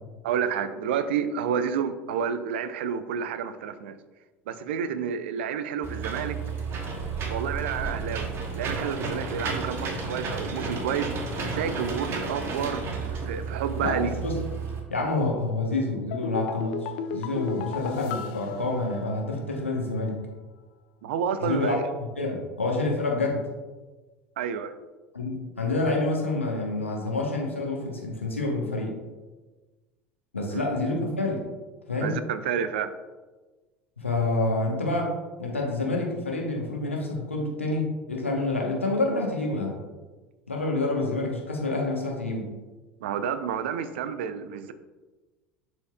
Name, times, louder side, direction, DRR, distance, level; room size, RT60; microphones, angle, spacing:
voice 1, 0.2-4.0 4.5-6.4 7.3-14.1 21.0-21.9 24.4-24.7 30.5-30.6 32.0-32.9 43.0-44.7, right 7 dB, 65° right, 12 dB, 0.4 m, -30 dB
Engine / Mechanisms, 5.8-14.8, right 4 dB, 40° right, 1.1 m, -32 dB
voice 2, 13.8-14.4 14.9-16.8 17.1-20.2 21.4-23.4 25.1-29.0 30.3-31.4 31.9-32.2 34.0-39.8 40.5-42.5, left 2 dB, 85° left, 0 dB, 1.1 m, -28 dB
sound 1, 16.1-19.5 19.8-19.9, left 7 dB, 55° left, 0.4 m, -35 dB
11.0 x 4.5 x 2.3 m, 1.3 s
figure-of-eight pair, 70°, 7 cm